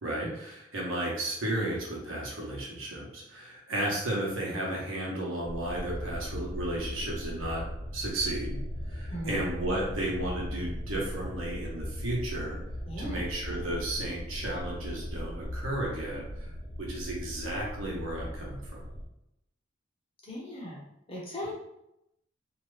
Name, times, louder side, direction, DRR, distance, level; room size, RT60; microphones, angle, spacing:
voice 1, 0.0-7.6 7.9-8.6 8.9-12.6 13.0-16.5 16.8-18.8, right 1 dB, 85° right, -3 dB, 1.0 m, -33 dB
sound 1, 5.4-19.1, equal, 60° left, 1.0 m, -38 dB
voice 2, 9.1-9.4 12.9-13.2 20.2-20.8 21.1-21.5, equal, 30° left, -5 dB, 0.8 m, -38 dB
2.8 x 2.3 x 3.1 m, 0.83 s
head